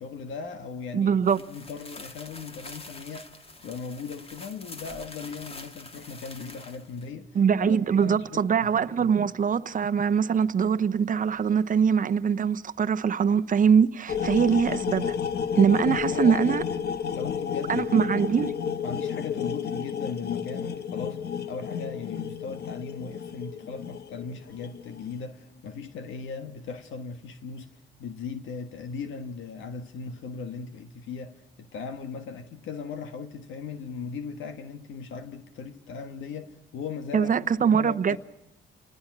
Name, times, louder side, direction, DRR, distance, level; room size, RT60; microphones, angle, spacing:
voice 1, 0.0-1.1 1.5-9.1 15.7-16.5 17.1-18.3 18.8-21.2 21.5-37.3 37.7-38.2, left 5 dB, 80° left, 1.5 m, -38 dB
voice 2, 0.9-1.4 7.3-15.2 15.6-16.6 17.7-18.5 37.1-38.2, right 7 dB, 40° right, 0.9 m, -23 dB
sound 1, 1.2-7.1, left 2 dB, 30° left, 2.0 m, -45 dB
sound 2, 14.1-25.0, left 7 dB, 55° left, 1.2 m, -31 dB
28.0 x 19.5 x 6.1 m
cardioid pair, 90°, 20 cm